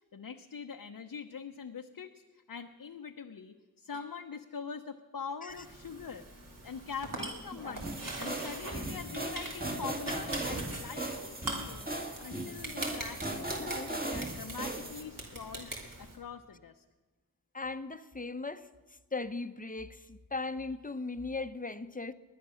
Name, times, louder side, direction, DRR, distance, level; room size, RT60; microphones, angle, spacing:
voice 1, 0.1-2.2 2.5-6.3 6.6-13.5 13.8-15.7 16.0-16.8, left 6 dB, 70° left, 0.8 m, -43 dB
sound 1, 5.5-16.2, right 2 dB, 60° right, 3.2 m, -43 dB
sound 2, 7.8-15.0, right 2 dB, 25° right, 2.3 m, -38 dB
voice 2, 13.6-13.9 17.5-18.7 19.1-22.1, left 3 dB, 25° left, 0.8 m, -38 dB
19.5 x 11.0 x 6.4 m
cardioid pair, 40°, 36 cm